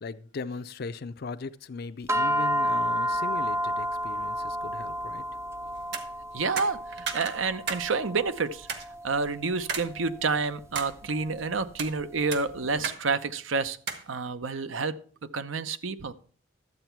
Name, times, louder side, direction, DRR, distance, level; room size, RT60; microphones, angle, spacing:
voice 1, 0.0-5.2, left 4 dB, 55° left, 0.5 m, -38 dB
sound 1, 2.1-12.6, equal, 15° right, 0.4 m, -32 dB
sound 2, 5.8-6.0 6.6-7.9 8.2-8.3 8.7-8.8 9.7-9.9 10.3-10.9 11.6-11.9 12.3-13.0 13.3-13.4 13.9-14.1, right 6 dB, 60° right, 1.3 m, -33 dB
voice 2, 6.3-8.7 9.0-13.8 14.1-14.9 15.3-16.1, right 4 dB, 90° right, 0.7 m, -29 dB
12.0 x 8.0 x 4.5 m
head